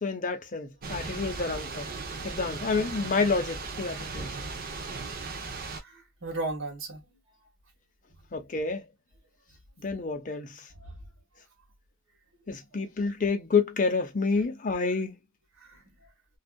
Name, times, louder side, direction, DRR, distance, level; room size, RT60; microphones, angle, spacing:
voice 1, 0.0-1.9 2.2-4.3 8.3-8.8 9.8-10.7 12.5-15.2, left 4 dB, 40° left, 0.6 m, -29 dB
Thunder / Rain, 0.8-5.8, right 3 dB, 45° right, 0.6 m, -37 dB
voice 2, 5.8-7.0 10.7-11.0 15.6-16.1, right 2 dB, 85° right, 1.2 m, -37 dB
2.6 x 2.4 x 2.2 m
head